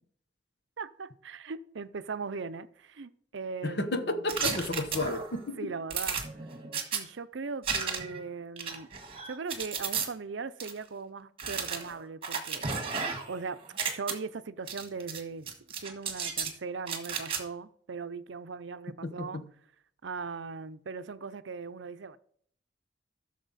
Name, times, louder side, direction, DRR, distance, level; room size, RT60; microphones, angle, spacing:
voice 1, 0.8-4.5 5.6-6.2 6.9-8.9 9.2-12.7 13.3-13.6 13.9-15.5 15.8-19.4 20.0-22.2, right 4 dB, 75° right, 0.6 m, -39 dB
voice 2, 3.6-5.7 19.0-19.4, left 2 dB, 60° left, 1.1 m, -32 dB
sound 1, 4.3-5.4 5.9-7.0 7.6-8.2 8.6-10.1 10.6-10.7 11.4-13.4 13.6-14.1 14.7-15.2 15.5-16.5 16.9-17.4, right 6 dB, 30° right, 1.6 m, -33 dB
14.0 x 6.6 x 4.2 m
head